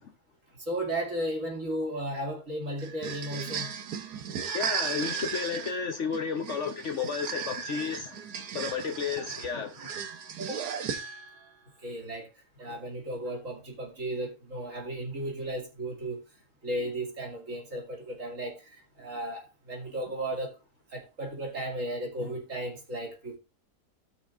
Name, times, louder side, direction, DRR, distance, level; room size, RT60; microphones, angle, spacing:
voice 1, 0.6-3.7 9.1-9.2 10.4-10.6 11.8-12.3 12.6-16.2 16.6-20.6 20.9-23.4, right 1 dB, 50° right, 2.9 m, -35 dB
sound 1, 2.8-11.4, right 7 dB, 80° right, 1.5 m, -36 dB
voice 2, 4.5-8.2 8.5-9.7, left 6 dB, 55° left, 1.1 m, -32 dB
17.0 x 6.1 x 2.5 m
omnidirectional pair, 1.7 m